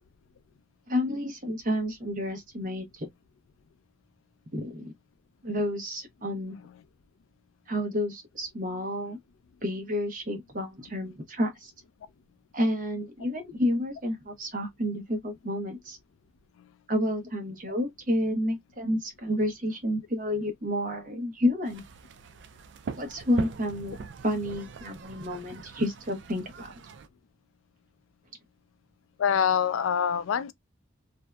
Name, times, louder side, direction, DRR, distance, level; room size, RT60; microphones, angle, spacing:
voice 1, 0.9-3.1 4.5-4.9 5.4-6.6 7.7-9.2 9.6-11.7 12.5-16.0 16.9-21.9 23.0-23.9 24.2-26.7, left 1 dB, 40° right, 0.8 m, -30 dB
sound 1, 21.6-27.1, right 5 dB, 60° right, 0.3 m, -41 dB
voice 2, 29.2-30.5, left 8 dB, 85° left, 0.3 m, -25 dB
2.6 x 2.1 x 2.2 m
head